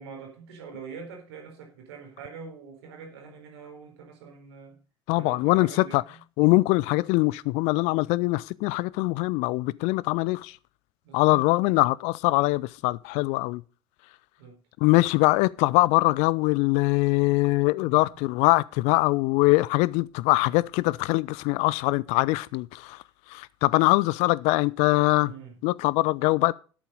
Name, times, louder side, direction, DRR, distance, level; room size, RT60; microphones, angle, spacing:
voice 1, 0.0-4.8 5.1-6.0 11.0-11.4 14.4-14.6 17.8-18.0 25.2-25.5, right 5 dB, 65° right, 4.2 m, -44 dB
voice 2, 5.1-6.0 6.4-10.6 11.1-13.6 14.8-23.0 23.3-25.3 25.6-26.5, left 22 dB, 50° left, 0.4 m, -23 dB
10.0 x 8.6 x 5.3 m
figure-of-eight pair, 65°, 15 cm